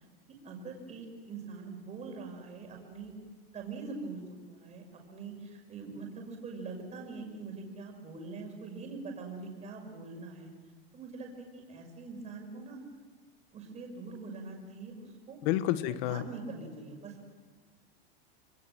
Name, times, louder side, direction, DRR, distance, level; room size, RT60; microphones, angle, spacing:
voice 1, 0.4-3.1 3.5-4.2 4.5-4.8 5.1-10.5 10.9-12.8 13.5-15.4 15.9-17.2, right 4 dB, 20° right, 2 dB, 6.0 m, -43 dB
voice 2, 15.4-16.2, left 13 dB, 50° left, 12 dB, 1.5 m, -29 dB
28.0 x 22.0 x 7.7 m, 1.5 s
supercardioid pair, 150°, 30 cm